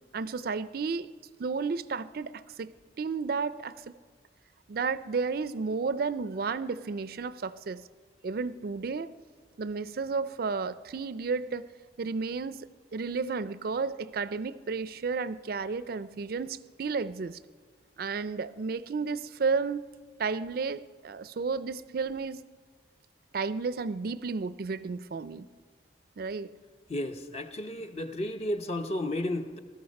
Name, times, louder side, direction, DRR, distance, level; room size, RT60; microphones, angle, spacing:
voice 1, 0.1-1.1 1.4-2.7 3.0-3.7 4.7-7.8 8.2-9.1 9.6-11.7 12.0-17.4 18.0-19.9 20.2-22.4 23.3-25.5 26.2-26.5, right 4 dB, 55° right, 15 dB, 0.4 m, -32 dB
voice 2, 26.9-29.6, left 1 dB, 35° left, 7 dB, 0.8 m, -33 dB
19.5 x 13.0 x 5.3 m, 1.5 s
head